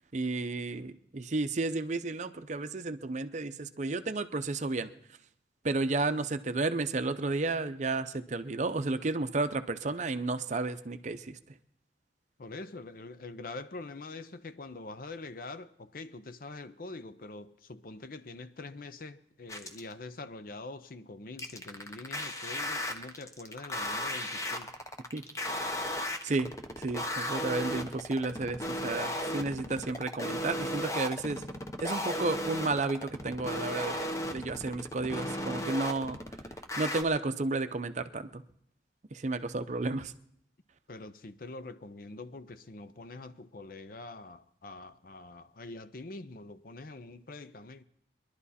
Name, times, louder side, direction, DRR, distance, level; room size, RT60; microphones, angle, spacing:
voice 1, 0.1-4.9 5.6-11.4 25.1-25.2 26.0-26.5 26.8-31.4 31.8-34.1 34.3-36.2 36.8-38.4 39.1-40.1, right 3 dB, 40° right, 0.6 m, -32 dB
voice 2, 12.4-24.7 40.9-47.8, left 3 dB, 55° left, 0.6 m, -44 dB
sound 1, 19.5-19.9 21.4-37.0, left 1 dB, 20° left, 0.9 m, -35 dB
22.0 x 11.5 x 4.2 m
head